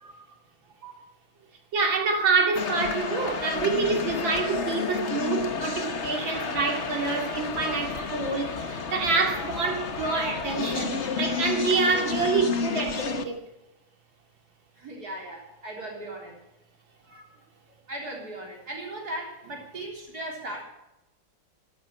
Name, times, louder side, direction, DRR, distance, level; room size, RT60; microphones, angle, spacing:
voice 1, 1.7-13.4 17.1-17.2, right 4 dB, 70° right, 3 dB, 3.3 m, -27 dB
sound 1, 2.5-13.2, left 5 dB, 40° left, 1.3 m, -31 dB
voice 2, 14.8-16.4 17.9-20.6, right 1 dB, 50° right, 0 dB, 4.2 m, -37 dB
12.5 x 12.5 x 8.3 m, 0.92 s
omnidirectional pair, 2.2 m